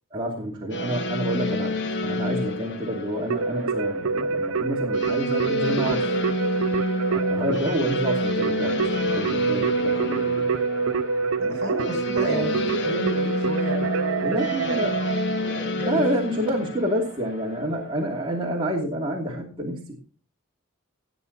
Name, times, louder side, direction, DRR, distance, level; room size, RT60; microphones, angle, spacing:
voice 1, 0.1-1.7 2.0-6.0 7.1-10.6 12.3-12.5 14.2-14.9 15.8-19.9, right 1 dB, 25° right, -3 dB, 2.8 m, -28 dB
sound 1, 0.7-18.8, left 1 dB, 60° left, 1.3 m, -29 dB
Keyboard (musical), 3.3-15.7, right 4 dB, 70° right, 0.6 m, -27 dB
voice 2, 11.4-14.2 14.7-15.1 15.4-15.9, right 1 dB, 55° right, 5 dB, 5.4 m, -32 dB
18.0 x 7.9 x 4.1 m, 0.39 s
head